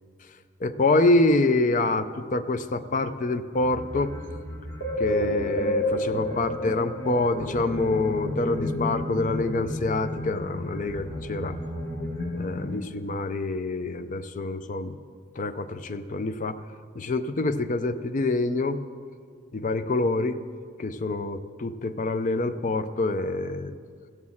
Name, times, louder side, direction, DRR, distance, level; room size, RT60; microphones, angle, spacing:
voice 1, 0.6-4.1 5.0-11.6 12.4-15.0 15.4-16.6 17.0-18.8 19.5-20.4 20.8-23.7, left 2 dB, 40° left, 11 dB, 0.5 m, -26 dB
sound 1, 3.5-12.8, left 1 dB, 60° left, 2.0 m, -31 dB
15.5 x 6.3 x 7.2 m, 2.1 s
head